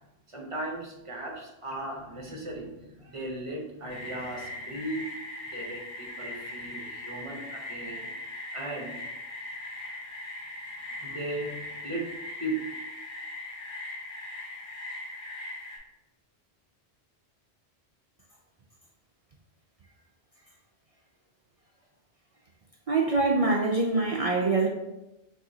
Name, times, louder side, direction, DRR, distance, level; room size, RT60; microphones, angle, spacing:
voice 1, 0.3-5.1 5.5-8.1 8.5-9.0 10.7-12.1 12.4-12.5, right 1 dB, 30° right, -1 dB, 0.9 m, -37 dB
sound 1, 3.9-15.8, left 2 dB, 80° left, 1.3 m, -40 dB
voice 2, 22.9-24.7, right 3 dB, 55° right, -1 dB, 0.4 m, -24 dB
6.5 x 2.7 x 2.7 m, 0.93 s
omnidirectional pair, 1.1 m